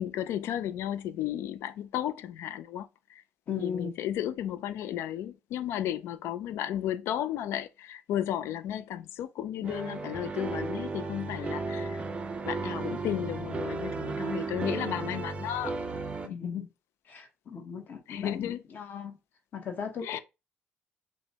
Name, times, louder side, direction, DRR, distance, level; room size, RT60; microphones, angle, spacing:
voice 1, 0.0-3.2 3.6-12.0 12.5-15.7 18.1-18.6 20.0-20.2, left 11 dB, 80° left, 0.4 m, -34 dB
voice 2, 3.5-3.9 16.2-16.7 17.1-19.1 19.5-20.2, left 7 dB, 45° left, 1.0 m, -37 dB
sound 1, 9.6-16.3, right 4 dB, 25° right, 0.5 m, -34 dB
6.1 x 2.2 x 2.8 m
cardioid pair, 150°, 4 cm